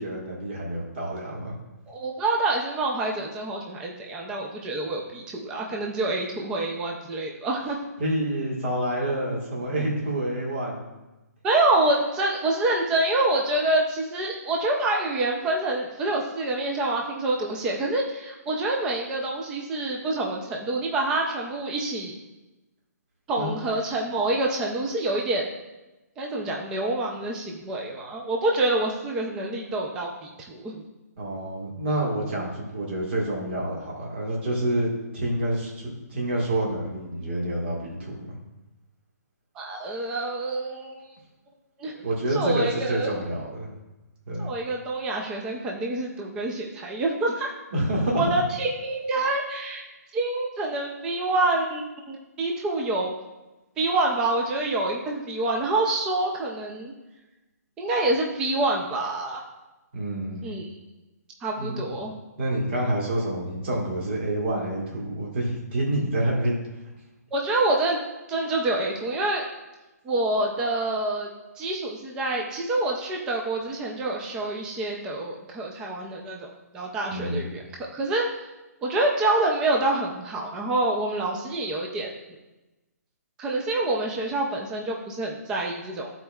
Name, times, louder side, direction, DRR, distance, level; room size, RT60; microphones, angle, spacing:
voice 1, 0.0-1.5 8.0-10.8 23.4-23.6 31.2-38.4 42.0-43.7 44.3-44.5 47.7-48.2 59.9-60.4 61.6-61.8 62.4-66.6 77.1-77.4, right 1 dB, 40° right, -3 dB, 1.6 m, -28 dB
voice 2, 1.9-7.8 11.4-22.2 23.3-25.4 26.2-30.8 39.6-41.1 41.8-43.1 44.4-47.5 48.1-49.8 50.1-51.8 52.1-53.1 53.8-56.9 57.8-59.4 60.4-60.7 61.4-62.1 67.3-68.0 68.3-69.5 70.0-71.3 71.6-77.6 77.9-78.3 78.8-82.1 83.4-86.1, right 2 dB, 5° right, 0 dB, 0.4 m, -27 dB
12.5 x 4.3 x 2.3 m, 1.0 s
hypercardioid pair, 170°, 9 cm